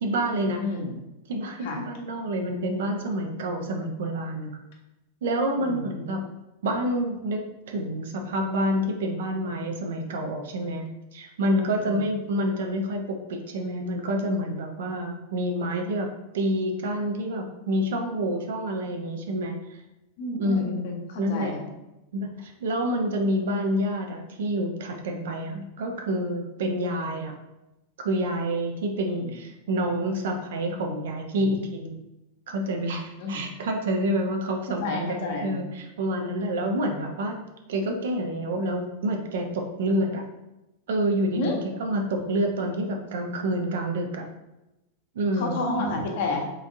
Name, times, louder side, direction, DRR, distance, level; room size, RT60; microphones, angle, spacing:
voice 1, 0.0-0.6 1.3-4.5 5.2-6.2 6.6-10.9 11.1-19.6 20.4-21.5 22.1-27.3 28.0-32.0 32.5-37.4 37.7-40.3 40.9-41.5 41.8-44.2 45.1-45.5 45.8-46.0, equal, 60° right, 3 dB, 0.6 m, -28 dB
voice 2, 0.6-0.9 1.6-1.8 5.5-5.9 11.8-12.1 20.2-21.6 29.2-29.3 31.4-31.5 33.2-33.5 34.8-35.6 41.3-41.6 45.3-46.5, left 2 dB, 55° left, 1 dB, 0.9 m, -30 dB
3.9 x 3.4 x 2.6 m, 0.96 s
figure-of-eight pair, 90°, 0 cm